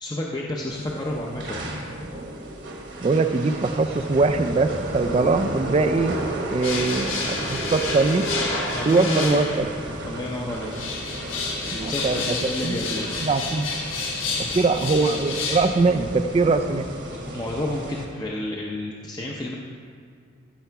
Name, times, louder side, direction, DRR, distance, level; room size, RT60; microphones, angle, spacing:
voice 1, 0.0-1.6 8.7-9.4 10.1-10.9 11.7-13.1 17.3-19.5, left 1 dB, 20° left, -2 dB, 0.6 m, -30 dB
sound 1, 0.7-18.0, right 1 dB, 55° right, 1.3 m, -34 dB
voice 2, 3.0-6.2 6.5-8.3 8.8-9.7 11.7-12.4 12.6-12.8 13.2-13.7 14.4-16.9, right 3 dB, 30° right, 7 dB, 0.3 m, -22 dB
sound 2, 6.6-9.9 10.5-15.7, left 3 dB, 80° left, 1.6 m, -30 dB
14.5 x 6.0 x 4.6 m, 2.3 s
head